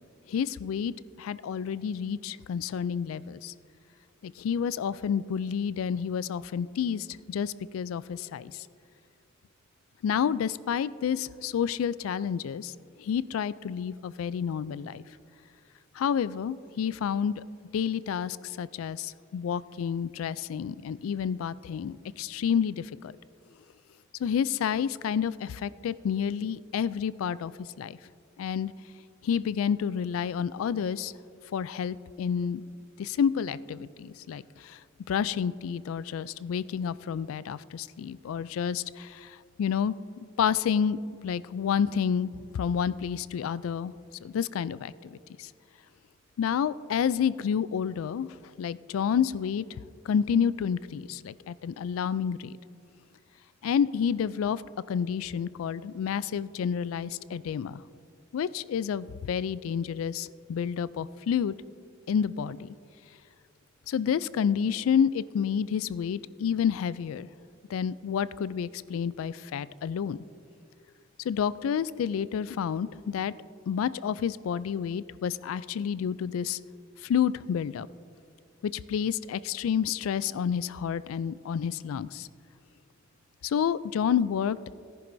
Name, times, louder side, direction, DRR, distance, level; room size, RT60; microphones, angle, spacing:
voice 1, 0.3-0.9 1.2-3.5 4.2-8.7 10.0-12.7 13.0-15.0 16.0-17.4 17.7-23.1 24.2-28.0 28.4-28.7 29.2-31.1 31.5-32.6 33.0-34.8 35.1-39.9 40.4-41.0 41.2-43.9 44.2-45.5 46.4-48.3 48.6-49.8 50.1-52.6 53.6-54.6 54.9-57.8 58.3-61.5 62.1-62.7 63.9-67.3 67.7-70.2 71.2-73.3 73.7-76.6 77.0-77.9 78.6-82.3 83.4-84.7, left 7 dB, 90° left, 17 dB, 0.3 m, -29 dB
17.0 x 10.5 x 2.6 m, 2.3 s
head